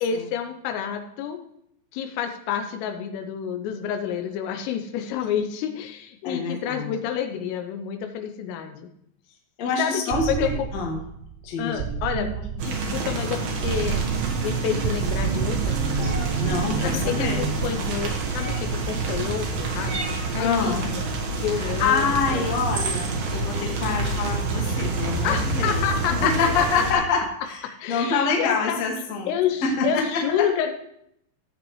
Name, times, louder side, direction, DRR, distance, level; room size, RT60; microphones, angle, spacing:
voice 1, 0.0-1.4 1.9-8.9 9.6-10.0 10.4-10.5 11.6-14.0 14.4-16.4 16.8-21.1 21.4-22.6 25.2-27.0 27.8-28.8 29.3-30.7, left 8 dB, 80° left, 6 dB, 3.3 m, -29 dB
voice 2, 6.2-6.9 9.6-11.0 11.4-11.8 12.1-12.3 16.4-17.4 20.4-20.8 21.5-27.6 27.9-29.3 29.6-30.5, left 4 dB, 55° left, 0 dB, 2.0 m, -26 dB
sound 1, 10.1-25.9, right 7 dB, 80° right, 2.9 m, -33 dB
sound 2, 12.6-26.9, right 3 dB, 60° right, 2.7 m, -27 dB
sound 3, 16.0-16.3 18.4-18.8 19.9-20.3 22.0-22.1 22.7-23.1, right 3 dB, 45° right, 2.8 m, -33 dB
16.0 x 8.1 x 3.2 m, 0.74 s
omnidirectional pair, 6.0 m